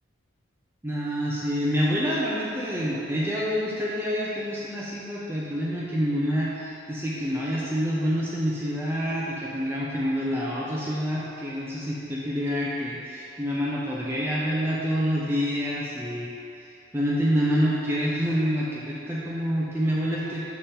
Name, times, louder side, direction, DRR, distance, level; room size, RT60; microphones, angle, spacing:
voice 1, 0.8-16.3 16.9-20.5, equal, 10° right, -7 dB, 0.6 m, -27 dB
7.0 x 6.8 x 3.7 m, 2.7 s
head